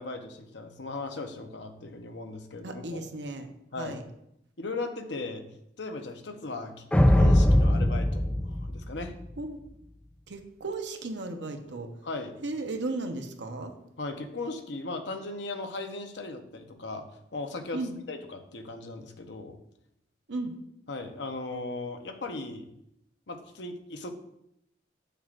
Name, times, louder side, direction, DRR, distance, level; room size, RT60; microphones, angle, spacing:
voice 1, 0.0-3.0 3.7-4.0 4.6-5.4 5.8-6.7 7.1-9.1 12.0-12.3 14.0-17.0 17.3-17.8 18.1-19.6 20.9-22.6 23.3-24.1, left 3 dB, 75° left, 5 dB, 0.9 m, -37 dB
voice 2, 2.6-3.5 3.8-4.0 9.4-9.6 10.3-11.9 12.4-13.7 17.7-18.0 20.3-20.5, right 2 dB, 80° right, 5 dB, 0.9 m, -35 dB
sound 1, 6.9-9.4, left 1 dB, 5° left, 0.3 m, -21 dB
7.4 x 6.7 x 2.5 m, 0.78 s
head